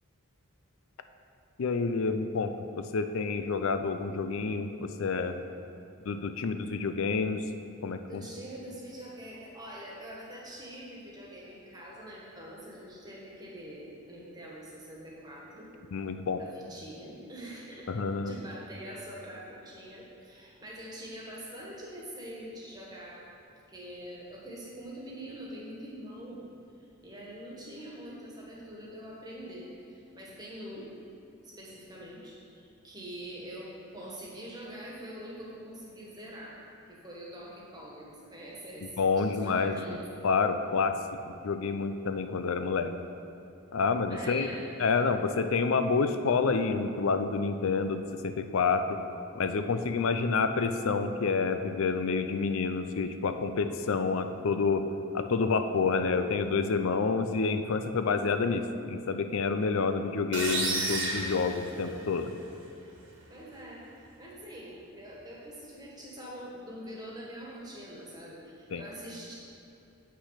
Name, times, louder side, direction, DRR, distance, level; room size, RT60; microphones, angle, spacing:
voice 1, 1.6-5.4 6.0-7.4 7.8-8.2 15.9-16.4 17.9-18.3 39.0-40.0 40.2-41.0 41.3-42.9 43.7-44.5 44.8-49.0 49.4-54.9 55.1-62.3 68.7-68.8, left 4 dB, 70° left, 9 dB, 0.5 m, -28 dB
voice 2, 8.1-15.7 16.4-17.9 18.2-23.3 23.7-26.4 26.8-30.9 31.4-36.6 36.9-40.0 44.1-44.7 63.3-69.3, equal, 20° right, -4 dB, 1.5 m, -44 dB
sound 1, 60.3-62.3, right 2 dB, 55° right, 1.5 m, -32 dB
8.3 x 6.0 x 5.7 m, 2.8 s
head